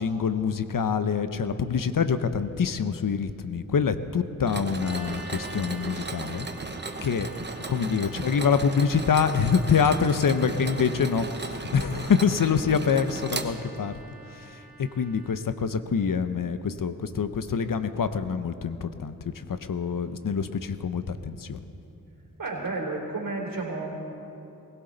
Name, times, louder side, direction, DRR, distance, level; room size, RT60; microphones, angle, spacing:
voice 1, 0.0-6.5 7.0-7.3 7.7-14.0 14.3-21.6, left 6 dB, 65° left, 11 dB, 0.8 m, -26 dB
Mechanisms, 4.5-14.0, right 3 dB, 30° right, 1.0 m, -36 dB
sound 1, 4.8-15.4, right 2 dB, 5° right, 2.9 m, -48 dB
voice 2, 22.4-24.1, right 2 dB, 70° right, -2 dB, 3.5 m, -32 dB
21.0 x 16.5 x 3.9 m, 2.8 s
wide cardioid pair, 65°, 35 cm